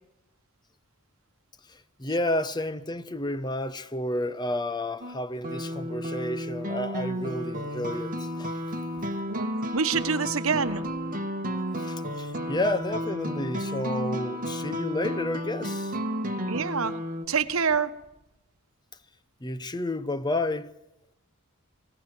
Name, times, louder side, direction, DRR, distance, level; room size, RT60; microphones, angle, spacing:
voice 1, 1.7-8.6 9.0-9.1 11.8-16.0 19.4-20.7, left 1 dB, 20° left, 0.8 m, -31 dB
sound 1, 5.0-17.3, equal, 40° right, 1.6 m, -32 dB
voice 2, 9.3-10.8 16.5-17.0 17.3-17.9, right 5 dB, 65° right, 1.3 m, -26 dB
20.5 x 18.0 x 7.9 m
head